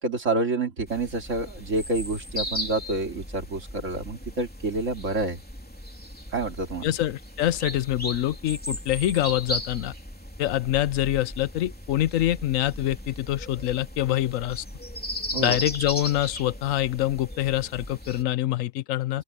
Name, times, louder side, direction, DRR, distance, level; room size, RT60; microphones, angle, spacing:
voice 1, 0.0-5.4 6.3-6.9 15.3-15.6, right 2 dB, 70° right, 2.9 m, -28 dB
sound 1, 0.9-18.2, equal, 5° left, 3.1 m, -37 dB
voice 2, 6.8-9.9 10.4-14.6 15.4-19.2, left 14 dB, 85° left, 1.0 m, -25 dB
open air
omnidirectional pair, 1.3 m